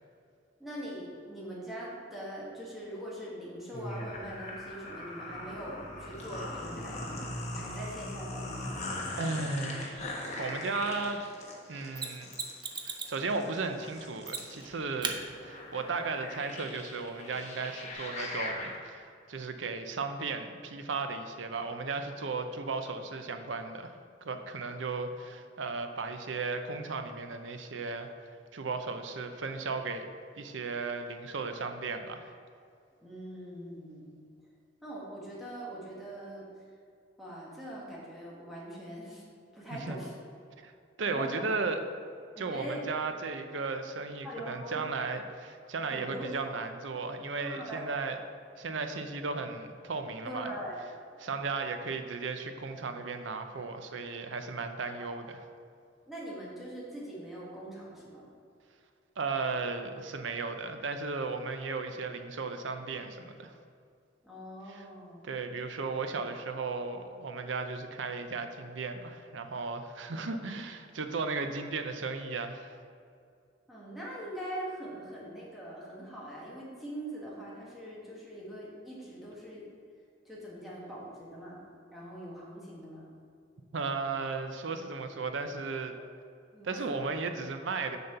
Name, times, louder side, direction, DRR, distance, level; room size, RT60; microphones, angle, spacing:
voice 1, 0.6-7.2 7.5-8.8 33.0-34.2 34.8-36.5 37.2-39.2 39.5-40.1 41.1-41.5 42.3-42.9 44.2-44.8 45.9-46.5 47.4-47.8 50.2-50.8 55.0-55.1 56.1-58.3 64.2-65.3 73.7-79.7 80.2-81.6 81.9-83.1 86.0-86.1 86.5-86.9, right 1 dB, ahead, -7 dB, 1.4 m, -42 dB
sound 1, 3.7-18.7, left 1 dB, 35° left, 1.1 m, -40 dB
voice 2, 9.2-10.1 10.4-11.2 11.7-12.3 12.8-30.0 30.4-32.3 39.7-40.0 40.6-40.7 41.0-41.8 42.4-48.2 48.6-50.5 51.2-55.4 59.2-63.5 64.7-64.9 65.2-72.7 83.7-85.9 86.6-88.0, right 4 dB, 70° right, 7 dB, 0.6 m, -35 dB
Mechanisms, 12.0-13.2 14.3-14.7 15.0-15.2 17.9-18.0, right 5 dB, 25° right, 0.6 m, -36 dB
6.6 x 4.3 x 6.7 m, 2.3 s
head